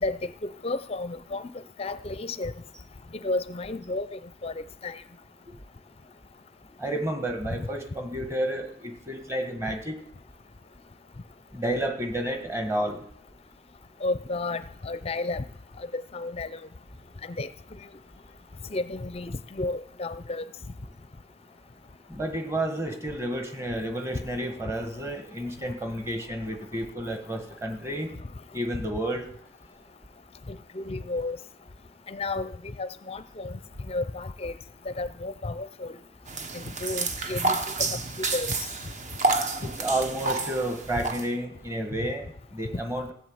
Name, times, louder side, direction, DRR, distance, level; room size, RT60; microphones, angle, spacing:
voice 1, 0.0-1.5 1.8-2.5 3.1-5.0 7.6-7.7 14.0-15.4 15.9-16.6 17.2-17.5 18.7-20.4 30.5-31.4 32.1-32.5 32.8-33.6 33.9-34.5 34.9-36.0 36.5-38.5, left 2 dB, 30° left, 13 dB, 0.5 m, -32 dB
voice 2, 6.8-10.0 11.5-13.0 22.1-28.1 28.5-29.3 39.6-43.1, right 1 dB, 15° right, 5 dB, 1.4 m, -31 dB
sound 1, 36.3-41.3, right 3 dB, 35° right, 0.9 m, -29 dB
16.0 x 7.9 x 7.8 m, 0.70 s
head